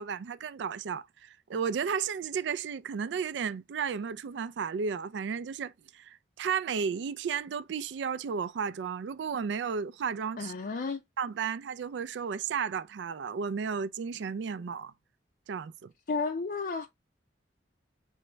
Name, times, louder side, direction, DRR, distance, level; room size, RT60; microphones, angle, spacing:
voice 1, 0.0-10.5 11.2-14.9 15.5-15.9, right 6 dB, 75° right, 0.4 m, -33 dB
voice 2, 10.4-11.0 16.1-16.9, left 4 dB, 50° left, 0.4 m, -32 dB
4.3 x 3.1 x 3.2 m
head